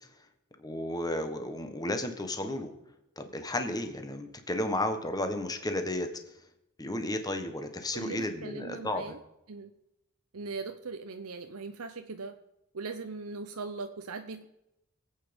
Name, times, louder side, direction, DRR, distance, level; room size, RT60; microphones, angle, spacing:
voice 1, 0.6-2.7 3.2-6.1 6.8-9.1, left 1 dB, 15° left, 7 dB, 1.4 m, -33 dB
voice 2, 7.9-9.2 9.5-9.7 10.3-12.4 12.7-14.4, right 4 dB, 80° right, 7 dB, 0.8 m, -39 dB
22.5 x 8.5 x 5.3 m, 0.88 s
head